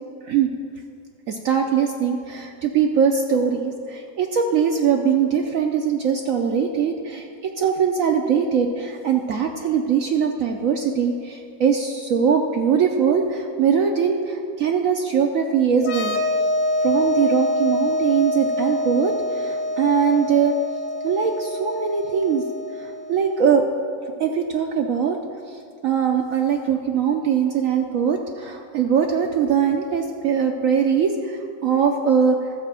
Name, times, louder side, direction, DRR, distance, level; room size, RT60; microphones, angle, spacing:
voice 1, 1.3-16.2 16.8-20.5 21.0-22.4 22.8-23.7 24.2-25.2 25.5-32.5, right 7 dB, 70° right, 3 dB, 0.8 m, -21 dB
sound 1, 15.8-23.3, left 1 dB, 75° left, 1.4 m, -25 dB
13.0 x 5.0 x 7.5 m, 2.3 s
omnidirectional pair, 1.9 m